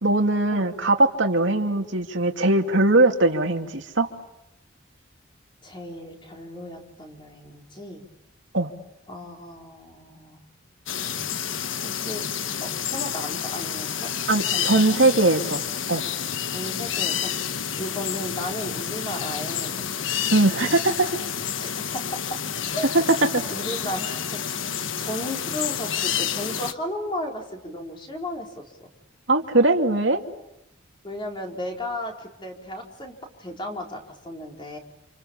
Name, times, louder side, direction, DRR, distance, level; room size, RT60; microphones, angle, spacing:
voice 1, 0.0-4.1 8.5-8.7 14.3-15.6 15.9-16.0 20.3-21.2 23.3-23.4 29.3-30.2, right 2 dB, 65° right, 4 dB, 2.5 m, -20 dB
voice 2, 5.6-8.0 9.1-10.4 11.9-12.2 12.6-14.1 14.5-15.0 16.5-20.1 21.6-22.2 22.7-23.2 23.5-28.9 31.0-33.1 33.4-34.8, left 1 dB, 25° left, 1 dB, 4.4 m, -35 dB
sound 1, 10.9-26.7, left 8 dB, 70° left, 1.3 m, -29 dB
29.5 x 28.0 x 7.2 m, 0.87 s
head